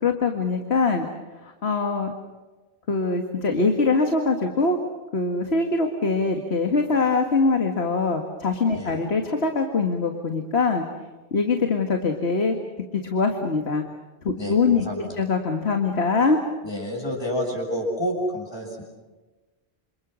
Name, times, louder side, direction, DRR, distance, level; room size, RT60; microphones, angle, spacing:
voice 1, 0.0-1.1 1.4-2.1 2.9-4.8 5.1-10.8 11.3-12.6 12.9-13.8 14.2-16.4, left 4 dB, 85° left, 4 dB, 2.1 m, -23 dB
voice 2, 8.7-9.1 14.4-15.1 16.6-18.8, equal, 25° left, -1 dB, 6.8 m, -29 dB
27.5 x 27.0 x 6.4 m, 1.2 s
omnidirectional pair, 1.1 m